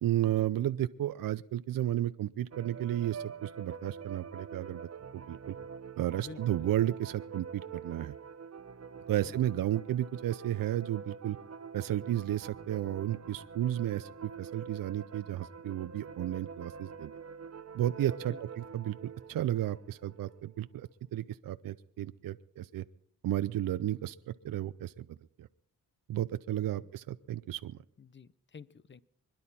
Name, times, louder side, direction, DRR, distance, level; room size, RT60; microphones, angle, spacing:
voice 1, 0.0-4.9 5.1-5.6 6.0-8.1 9.1-11.4 11.7-17.1 17.7-22.8 23.2-25.1 25.4-25.5 26.1-27.8, right 12 dB, 75° right, 13 dB, 0.5 m, -33 dB
sound 1, 2.5-20.6, right 6 dB, 45° right, 1.0 m, -46 dB
voice 2, 6.2-6.7 9.2-9.3 18.2-18.4 26.8-26.9 28.0-29.0, left 5 dB, 35° left, 18 dB, 0.8 m, -50 dB
25.0 x 10.5 x 4.2 m, 0.70 s
cardioid pair, 60°, 35 cm